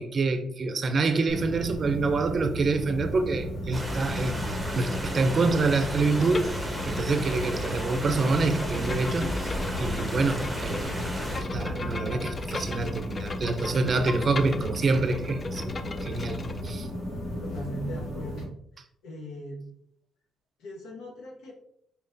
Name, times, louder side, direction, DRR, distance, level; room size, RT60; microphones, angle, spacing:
voice 1, 0.0-6.5 6.9-9.5 9.8-11.1 11.4-15.7 16.0-16.9, right 3 dB, 45° right, 0.5 m, -27 dB
sound 1, 1.3-18.4, left 1 dB, 70° left, 1.7 m, -34 dB
sound 2, 3.7-11.4, equal, 5° right, 1.1 m, -35 dB
Bowed string instrument, 6.2-16.7, left 3 dB, 35° left, 0.4 m, -38 dB
voice 2, 17.4-18.5 19.0-19.7 20.6-21.5, equal, 85° left, 1.1 m, -39 dB
4.4 x 3.4 x 2.6 m
cardioid pair, 90°, 0 cm